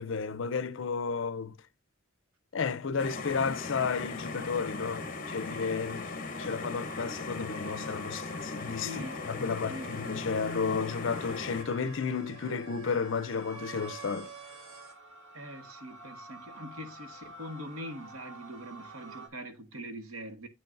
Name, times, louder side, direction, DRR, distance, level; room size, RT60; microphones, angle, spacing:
voice 1, 0.0-1.5 2.5-6.1 6.4-14.3, left 5 dB, 60° left, 0.5 m, -32 dB
sound 1, 3.0-11.6, left 3 dB, 40° left, 1.0 m, -38 dB
sound 2, 4.1-19.3, right 3 dB, 70° right, 1.8 m, -49 dB
voice 2, 8.8-9.2 9.7-9.9 15.3-20.5, equal, 85° right, 1.3 m, -42 dB
8.4 x 6.5 x 2.5 m
head